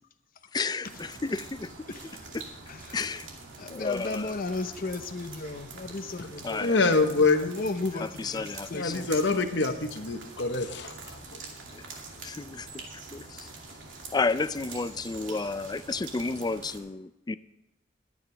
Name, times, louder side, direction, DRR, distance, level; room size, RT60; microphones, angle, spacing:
voice 1, 0.5-1.9 2.3-2.5 2.9-3.3 3.7-4.3 6.4-6.8 7.9-9.0 11.7-11.8 12.2-12.7 13.1-13.5 14.1-17.4, left 4 dB, 20° left, 14 dB, 0.4 m, -32 dB
sound 1, 0.8-16.8, right 3 dB, 85° right, 2.5 m, -45 dB
voice 2, 3.6-6.8 7.2-7.3 7.5-9.1, left 3 dB, 50° left, 8 dB, 0.7 m, -34 dB
voice 3, 6.6-7.6 8.7-10.9 11.3-11.4, left 3 dB, 65° left, 7 dB, 1.1 m, -25 dB
20.5 x 8.9 x 3.4 m, 0.92 s
head